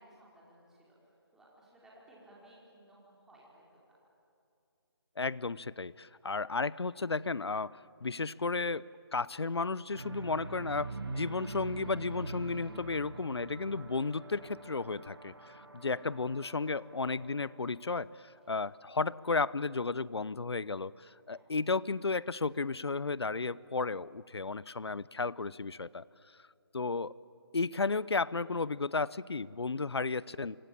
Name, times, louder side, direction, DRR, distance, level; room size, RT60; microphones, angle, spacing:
voice 1, 0.0-3.9 6.2-6.3 15.9-16.0 21.3-21.5, right 1 dB, 5° right, -6 dB, 4.7 m, -59 dB
voice 2, 5.2-8.9 9.1-26.0 26.7-27.2 27.5-30.6, left 4 dB, 80° left, 21 dB, 0.7 m, -33 dB
sound 1, 9.9-18.1, right 3 dB, 70° right, 3.4 m, -45 dB
26.0 x 25.5 x 8.7 m, 2.6 s
figure-of-eight pair, 160°, 13 cm